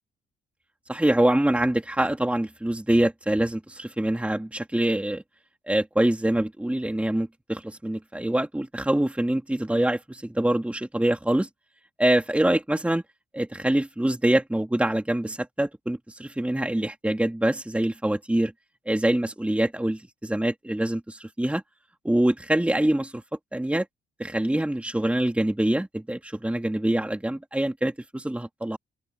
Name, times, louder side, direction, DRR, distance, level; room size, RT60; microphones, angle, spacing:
voice 1, 0.9-5.2 5.7-11.5 12.0-13.0 13.3-18.5 18.9-21.6 22.0-23.2 23.5-23.9 24.2-28.8, right 1 dB, 5° right, 2.6 m, -25 dB
open air
cardioid pair, 90°, 20 cm